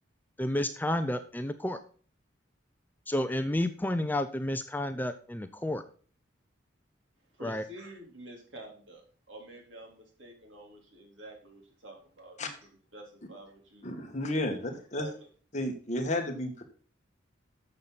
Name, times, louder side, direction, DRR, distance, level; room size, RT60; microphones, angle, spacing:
voice 1, 0.4-1.8 3.1-5.8 7.4-7.6, left 1 dB, 10° left, 9 dB, 0.6 m, -31 dB
voice 2, 7.4-12.4 12.9-13.8 14.9-15.1, right 1 dB, 75° right, 1 dB, 3.9 m, -48 dB
voice 3, 13.8-15.1 15.5-16.6, left 1 dB, 40° left, 3 dB, 2.0 m, -32 dB
12.0 x 7.3 x 4.1 m, 0.43 s
head